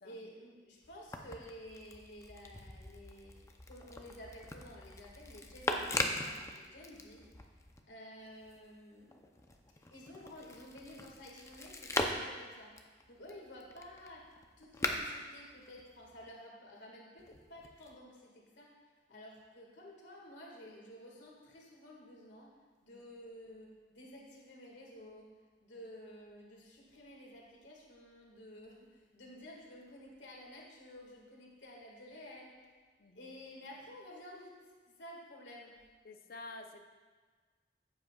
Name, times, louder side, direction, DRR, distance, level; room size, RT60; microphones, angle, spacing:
voice 1, 0.0-3.4 3.7-7.3 7.9-9.3 9.9-12.8 13.1-14.3 14.6-18.8 19.1-22.5 22.8-25.3 25.6-32.7 33.1-34.6 34.9-35.8, left 1 dB, 75° left, -2 dB, 1.9 m, -52 dB
sound 1, 0.8-7.8 8.2-16.3 17.2-18.0, left 2 dB, 15° left, 0.6 m, -41 dB
voice 2, 36.0-36.8, left 2 dB, 55° left, 6 dB, 0.7 m, -49 dB
14.5 x 7.9 x 2.4 m, 1.4 s
head